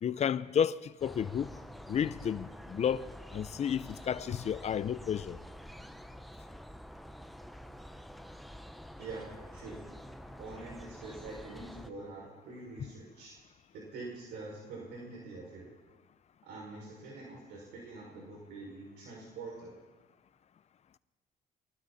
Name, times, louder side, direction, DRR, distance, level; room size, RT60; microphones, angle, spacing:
voice 1, 0.0-1.5 1.9-3.1 3.3-5.4, left 8 dB, 40° left, 0.7 m, -31 dB
sound 1, 1.0-11.9, equal, ahead, 0.9 m, -48 dB
voice 2, 9.0-9.8 10.4-13.3 13.7-15.7 16.4-19.7, right 3 dB, 80° right, 5.9 m, -45 dB
28.0 x 23.5 x 4.2 m
cardioid pair, 110°, 17 cm